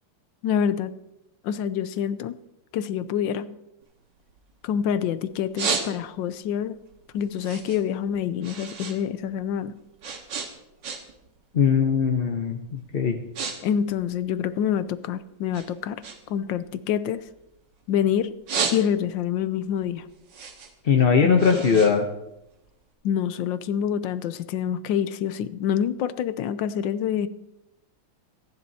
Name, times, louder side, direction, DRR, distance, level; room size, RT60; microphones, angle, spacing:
voice 1, 0.4-0.9 1.4-2.4 2.7-3.5 4.6-6.8 7.1-9.7 13.6-17.3 17.9-18.4 18.7-20.0 21.2-21.7 23.0-27.3, left 9 dB, 80° left, 14 dB, 1.3 m, -26 dB
sound 1, 3.8-4.9 5.3-6.4 6.8-9.0 9.3-11.3 11.6-11.9 12.5-12.7 13.0-13.6 13.8-15.1 15.5-17.8 18.2-19.3 19.7-22.8, right 5 dB, 70° right, 2.0 m, -33 dB
voice 2, 11.5-13.2 20.8-22.0, left 6 dB, 50° left, 3 dB, 0.7 m, -20 dB
26.0 x 10.5 x 2.8 m, 0.90 s
omnidirectional pair, 2.1 m